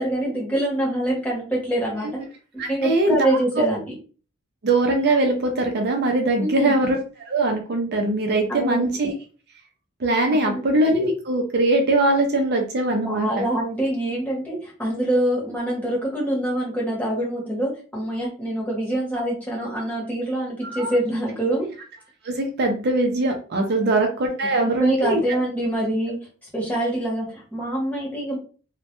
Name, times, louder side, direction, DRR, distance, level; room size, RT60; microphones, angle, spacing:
voice 1, 0.0-2.1 2.5-3.9 6.3-6.7 8.5-8.9 10.5-10.6 13.0-21.7 23.7-23.9 24.6-26.2 26.5-28.4, right 1 dB, 5° left, -5 dB, 0.8 m, -25 dB
voice 2, 2.6-3.2 3.6-3.7 4.6-7.0 7.3-9.1 10.0-13.4 20.6-20.9 22.2-25.2, right 2 dB, 50° right, 3 dB, 0.4 m, -21 dB
2.1 x 2.1 x 2.8 m, 0.38 s
head